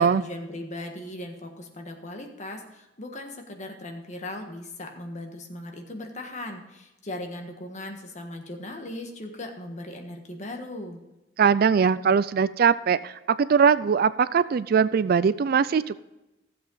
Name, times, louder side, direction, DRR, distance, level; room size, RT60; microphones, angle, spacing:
voice 1, 0.0-11.0, left 1 dB, 40° left, 3 dB, 1.5 m, -38 dB
voice 2, 11.4-16.0, right 6 dB, 55° right, 16 dB, 0.4 m, -21 dB
15.0 x 7.7 x 3.9 m, 0.97 s
head